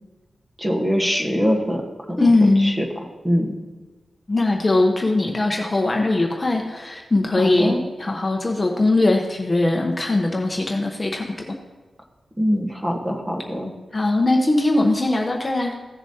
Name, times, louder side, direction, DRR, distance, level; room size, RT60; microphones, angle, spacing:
voice 1, 0.6-1.8 2.1-2.3 2.6-2.9 3.2-3.6 7.3-7.8 12.4-13.7, equal, 15° right, 1 dB, 1.2 m, -23 dB
voice 2, 2.2-2.8 4.3-7.7 8.0-11.3 13.9-15.7, left 2 dB, 20° left, 2 dB, 0.8 m, -20 dB
16.0 x 7.0 x 2.8 m, 1.2 s
wide cardioid pair, 160°, 0 cm